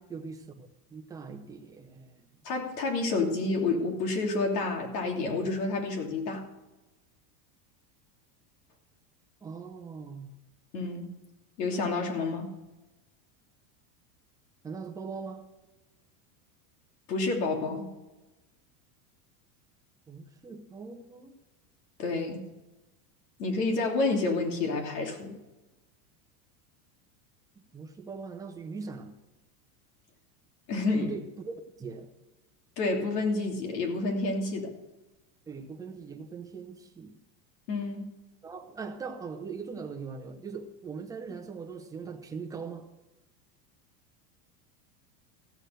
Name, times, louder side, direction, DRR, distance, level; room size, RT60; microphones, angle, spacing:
voice 1, 0.1-2.3 9.4-10.3 14.6-15.4 20.1-21.3 27.6-29.2 31.0-32.1 35.5-37.1 38.4-42.9, right 5 dB, 10° right, 3 dB, 0.6 m, -41 dB
voice 2, 2.4-6.4 10.7-11.1 11.6-12.5 17.1-17.9 22.0-22.4 23.4-25.4 30.7-31.2 32.8-34.7 37.7-38.1, left 3 dB, 90° left, 2 dB, 3.1 m, -29 dB
15.0 x 6.5 x 7.9 m, 1.1 s
supercardioid pair, 170°, 47 cm